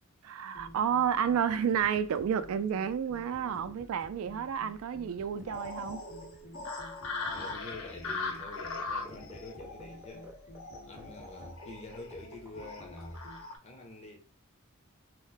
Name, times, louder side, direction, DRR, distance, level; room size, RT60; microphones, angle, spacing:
voice 1, 0.2-6.0, right 8 dB, 80° right, 0.3 m, -30 dB
sound 1, 0.5-13.4, left 1 dB, 85° left, 1.6 m, -52 dB
sound 2, 1.5-13.5, right 1 dB, 10° right, 0.5 m, -56 dB
sound 3, 5.5-13.6, left 3 dB, 70° left, 0.6 m, -40 dB
voice 2, 7.3-10.3 10.8-13.3 13.6-14.2, left 2 dB, 30° left, 0.6 m, -47 dB
3.0 x 2.1 x 3.9 m
head